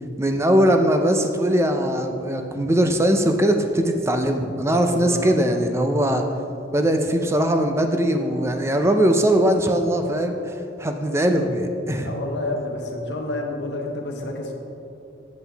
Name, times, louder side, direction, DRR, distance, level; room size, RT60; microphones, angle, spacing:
voice 1, 0.2-6.2 6.7-10.5 10.8-12.2, right 1 dB, 15° right, 5 dB, 0.4 m, -20 dB
voice 2, 4.7-5.4 11.9-14.5, left 2 dB, 65° left, 2 dB, 0.9 m, -29 dB
7.9 x 7.4 x 3.4 m, 2.8 s
head